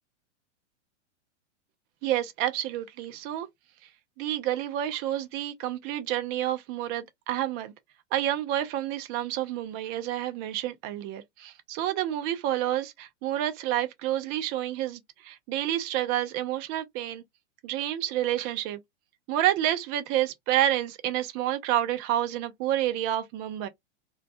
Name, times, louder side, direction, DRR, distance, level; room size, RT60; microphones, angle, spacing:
voice 1, 2.0-3.5 4.2-7.7 8.1-15.0 15.3-17.2 17.6-18.8 19.3-23.7, right 12 dB, 25° right, 0.4 m, -29 dB
2.2 x 2.2 x 2.6 m
hypercardioid pair, 120°, 37 cm